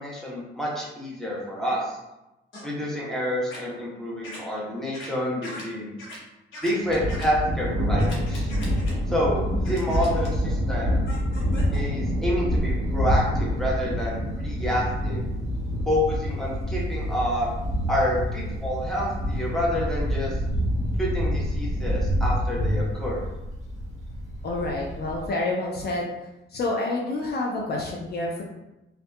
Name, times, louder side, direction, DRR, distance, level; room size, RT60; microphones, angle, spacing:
voice 1, 0.0-2.0 2.6-5.9 6.6-8.5 9.1-11.0 11.7-15.3 15.9-17.5 17.9-20.4 21.0-23.2, equal, ahead, -5 dB, 0.8 m, -28 dB
sound 1, 2.5-2.7 3.5-3.6 4.2-4.4 4.9-5.1 5.4-5.6 6.0-6.2 6.5-7.3 8.0-8.9 9.6-10.3 11.1-11.8, left 1 dB, 65° left, 0.9 m, -40 dB
Thunder, 6.9-25.3, equal, 35° right, 1.1 m, -27 dB
voice 2, 24.4-26.1 26.5-28.4, left 2 dB, 50° left, -1 dB, 0.4 m, -28 dB
2.6 x 2.3 x 2.2 m, 0.96 s
cardioid pair, 95°, 21 cm